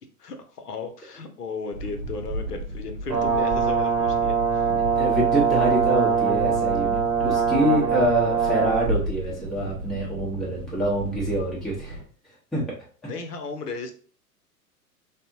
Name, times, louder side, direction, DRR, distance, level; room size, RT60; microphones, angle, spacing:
voice 1, 0.2-4.7 13.0-13.9, left 4 dB, 75° left, 6 dB, 0.7 m, -35 dB
sound 1, 1.7-12.0, right 1 dB, 55° right, 0.7 m, -33 dB
Brass instrument, 3.1-8.9, right 7 dB, 70° right, 1.0 m, -23 dB
voice 2, 5.0-12.0 12.5-12.6, right 1 dB, ahead, -6 dB, 0.5 m, -26 dB
3.5 x 2.0 x 2.6 m, 0.43 s
figure-of-eight pair, 95°, 47 cm